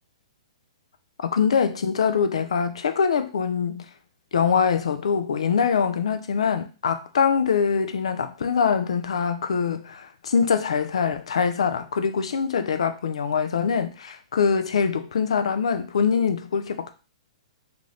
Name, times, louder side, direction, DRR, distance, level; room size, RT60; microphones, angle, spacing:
voice 1, 1.3-3.9 4.3-16.9, left 6 dB, 70° left, 0.4 m, -23 dB
2.5 x 2.4 x 3.3 m
hypercardioid pair, 120°, 3 cm